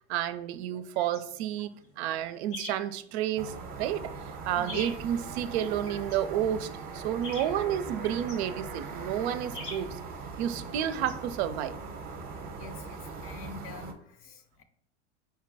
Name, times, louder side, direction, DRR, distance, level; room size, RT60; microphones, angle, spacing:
voice 1, 0.1-1.7 2.0-4.1 4.4-10.0 10.4-11.7, right 10 dB, 65° right, 12 dB, 0.5 m, -31 dB
voice 2, 0.7-1.2 1.5-1.7 2.1-2.2 4.5-4.9 12.4-14.6, left 4 dB, 40° left, 7 dB, 0.6 m, -45 dB
sound 1, 1.1-11.6, left 1 dB, 80° left, 1.5 m, -48 dB
sound 2, 3.4-13.9, right 4 dB, 25° right, 0.7 m, -40 dB
4.9 x 2.2 x 4.0 m, 0.66 s
hypercardioid pair, 100°, 36 cm